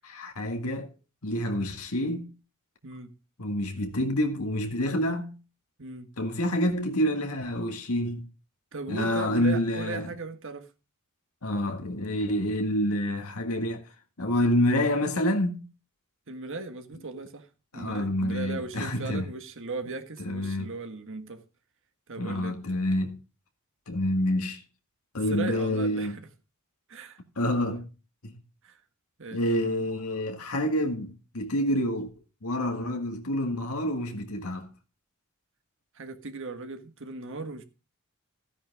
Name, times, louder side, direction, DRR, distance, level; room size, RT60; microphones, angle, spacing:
voice 1, 0.0-0.9 1.2-2.3 3.4-5.3 6.2-8.3 8.9-10.1 11.4-13.8 14.2-15.6 17.7-19.3 20.2-20.7 22.2-23.2 23.9-24.6 25.1-26.2 27.4-27.8 28.2-28.3 29.3-32.1 32.4-34.7, left 1 dB, 75° left, 2.0 m, -28 dB
voice 2, 2.8-3.1 5.8-6.1 8.7-10.7 16.3-17.5 17.7-21.4 22.1-22.6 25.3-26.3 26.9-27.2 28.6-28.8 29.2-29.8 35.9-37.6, right 3 dB, 60° right, 1.6 m, -38 dB
14.0 x 10.0 x 3.6 m
head